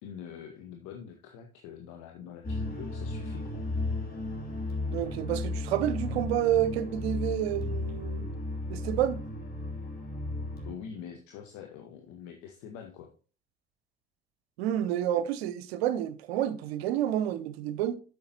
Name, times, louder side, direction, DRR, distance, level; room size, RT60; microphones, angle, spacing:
voice 1, 0.0-3.6 10.6-13.1, left 7 dB, 65° left, 1.2 m, -45 dB
sound 1, 2.4-10.7, left 2 dB, 30° left, 3.0 m, -34 dB
voice 2, 4.9-8.3 8.7-9.2 14.6-18.0, right 11 dB, 75° right, 0.7 m, -29 dB
10.5 x 7.1 x 2.9 m
figure-of-eight pair, 50°, 31 cm